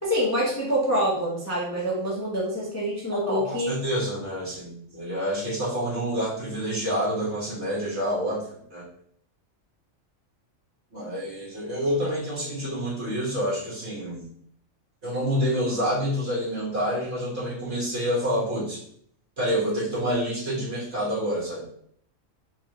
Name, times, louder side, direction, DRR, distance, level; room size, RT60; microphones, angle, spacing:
voice 1, 0.0-3.7, equal, 15° left, -5 dB, 0.7 m, -26 dB
voice 2, 3.2-8.4 8.7-8.8 10.9-14.2 15.0-18.8 19.4-21.6, equal, 55° right, -7 dB, 2.0 m, -28 dB
4.6 x 2.5 x 3.0 m, 0.64 s
omnidirectional pair, 1.4 m